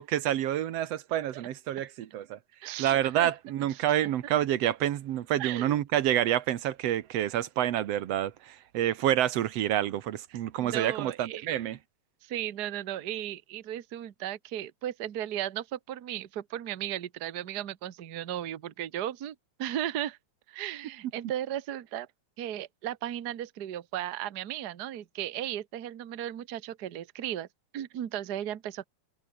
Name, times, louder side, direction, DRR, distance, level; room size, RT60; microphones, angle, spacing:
voice 1, 0.0-2.4 2.8-11.8, right 11 dB, 60° right, 1.9 m, -28 dB
voice 2, 2.6-3.3 3.7-3.8 4.2-4.3 5.4-5.8 10.6-11.5 12.2-20.2 20.5-22.1 22.4-27.5 27.7-28.9, right 12 dB, 90° right, 0.8 m, -36 dB
open air
omnidirectional pair, 3.6 m